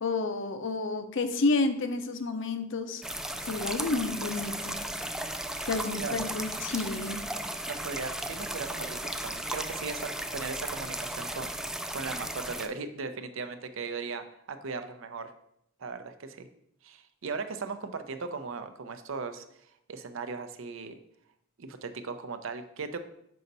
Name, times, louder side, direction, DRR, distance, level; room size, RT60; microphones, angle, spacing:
voice 1, 0.0-3.0 3.4-4.8 5.6-7.2, left 3 dB, 65° left, 9 dB, 0.6 m, -30 dB
sound 1, 3.0-12.7, right 1 dB, 5° right, 0.3 m, -35 dB
voice 2, 5.9-6.3 6.6-6.7 7.7-15.3 15.8-16.5 16.8-19.4 19.9-21.0 21.6-23.0, right 4 dB, 70° right, 9 dB, 0.6 m, -38 dB
5.6 x 5.3 x 4.0 m, 0.75 s
head